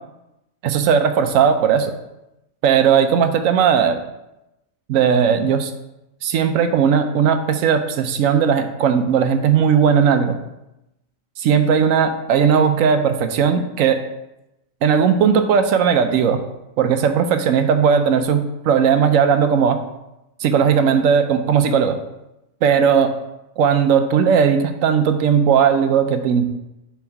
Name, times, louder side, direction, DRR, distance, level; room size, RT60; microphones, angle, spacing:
voice 1, 0.6-1.9 2.6-4.0 4.9-5.7 6.2-10.4 11.4-14.0 14.8-16.4 16.8-19.8 20.4-22.0 22.6-23.1 23.6-26.4, right 7 dB, 80° right, 8 dB, 1.0 m, -17 dB
7.1 x 3.5 x 4.5 m, 0.91 s
omnidirectional pair, 1.4 m